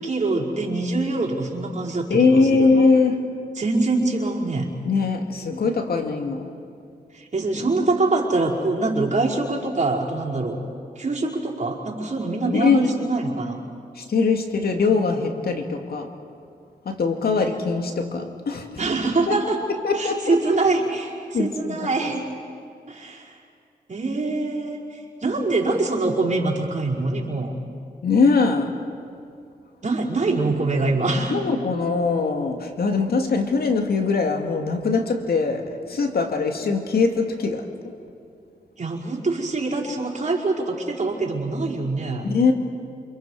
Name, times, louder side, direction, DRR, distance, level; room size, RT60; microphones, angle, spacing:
voice 1, 0.0-2.9 3.5-4.7 7.1-10.6 10.9-13.6 18.8-19.6 19.9-22.2 22.9-23.4 23.9-27.5 29.8-31.4 38.8-42.3, right 3 dB, 45° right, -4 dB, 5.1 m, -24 dB
voice 2, 2.1-3.3 4.8-6.5 12.5-12.9 14.0-16.1 16.9-18.8 19.3-19.4 19.8-20.4 21.3-21.9 28.0-28.8 31.1-37.7 42.3-42.5, left 4 dB, 70° left, 4 dB, 2.2 m, -21 dB
28.5 x 27.5 x 4.8 m, 2.4 s
cardioid pair, 55°, 17 cm